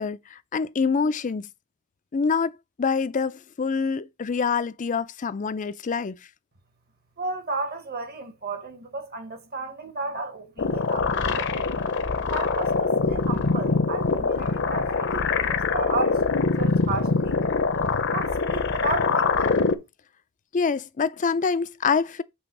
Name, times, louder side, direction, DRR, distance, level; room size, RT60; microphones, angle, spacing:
voice 1, 0.0-1.5 2.1-2.5 2.8-6.2 20.5-22.2, left 5 dB, 35° left, 0.4 m, -25 dB
voice 2, 7.2-11.7 12.3-17.4 18.1-19.6, right 3 dB, 45° right, 1.2 m, -33 dB
sound 1, 10.6-19.7, left 4 dB, 55° left, 0.8 m, -24 dB
7.1 x 3.4 x 5.8 m
head